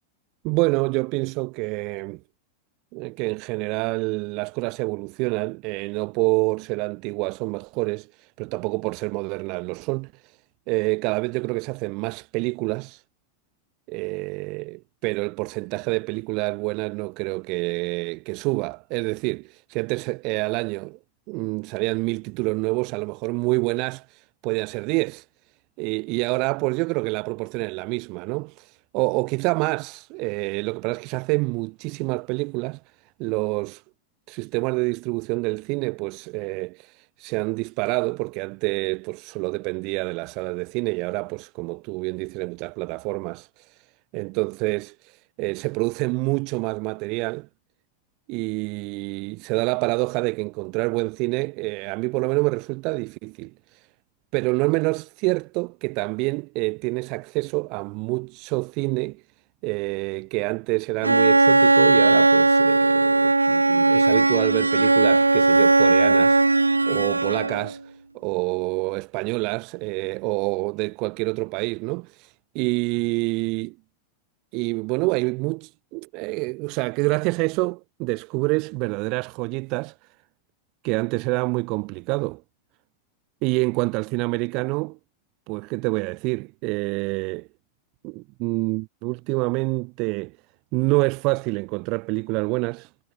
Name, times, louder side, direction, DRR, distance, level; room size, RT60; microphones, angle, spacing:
voice 1, 0.4-2.2 2.9-10.4 10.7-13.0 13.9-21.0 21.3-25.3 25.8-32.8 33.2-33.8 34.3-43.9 44.1-47.5 48.3-53.9 54.3-59.2 59.6-73.8 74.5-79.9 80.8-82.4 83.4-85.0 85.5-87.5 88.0-90.4 90.7-92.9, right 28 dB, 45° right, 1.5 m, -27 dB
Bowed string instrument, 61.0-67.7, right 3 dB, 80° right, 0.3 m, -18 dB
figure-of-eight pair, 90°, 0 cm